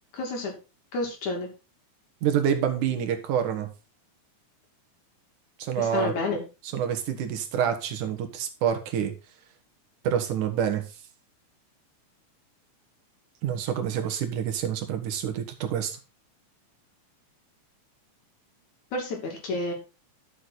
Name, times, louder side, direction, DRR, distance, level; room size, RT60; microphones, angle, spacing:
voice 1, 0.1-0.5 0.9-1.5 5.8-6.4 18.9-19.7, left 2 dB, 70° left, 2 dB, 4.0 m, -30 dB
voice 2, 2.2-3.7 5.6-6.1 6.7-9.1 10.0-10.9 13.4-16.0, right 9 dB, 80° right, 6 dB, 3.0 m, -27 dB
11.5 x 6.6 x 4.2 m, 0.30 s
omnidirectional pair, 3.5 m